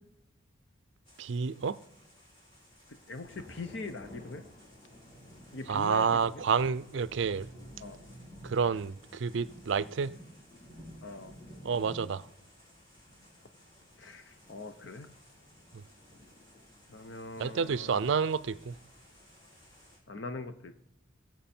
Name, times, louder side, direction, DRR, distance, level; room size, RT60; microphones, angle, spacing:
sound 1, 1.1-20.0, equal, 25° left, 4.8 m, -53 dB
voice 1, 1.2-1.8 5.7-7.5 8.4-10.1 11.6-12.3 15.7-15.8 17.4-18.8, right 6 dB, 65° right, 0.4 m, -29 dB
voice 2, 3.1-4.4 5.5-6.1 7.8-8.0 11.0-11.3 14.0-15.1 16.9-18.0 20.1-20.8, left 2 dB, 60° left, 0.7 m, -41 dB
19.5 x 7.6 x 4.4 m
head